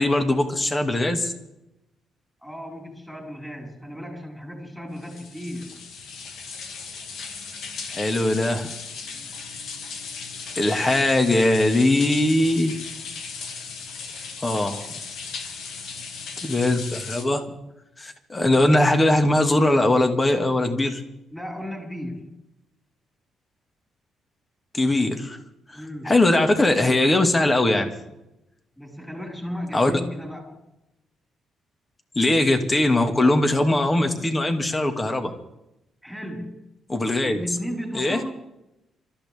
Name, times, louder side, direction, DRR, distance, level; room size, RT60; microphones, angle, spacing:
voice 1, 0.0-1.3 7.9-8.7 10.6-12.7 14.4-14.9 16.4-17.5 18.0-21.0 24.7-25.4 25.7-27.9 29.7-29.9 32.2-35.3 36.9-37.4 37.9-38.2, left 1 dB, 20° left, 6 dB, 2.1 m, -20 dB
voice 2, 2.4-5.8 21.3-22.3 25.7-26.1 28.8-30.6 36.0-36.6 37.2-38.3, equal, 5° left, 0 dB, 5.3 m, -35 dB
sound 1, 5.0-17.2, left 5 dB, 80° left, 2.5 m, -36 dB
28.5 x 14.0 x 3.7 m, 0.90 s
cardioid pair, 120°, 0 cm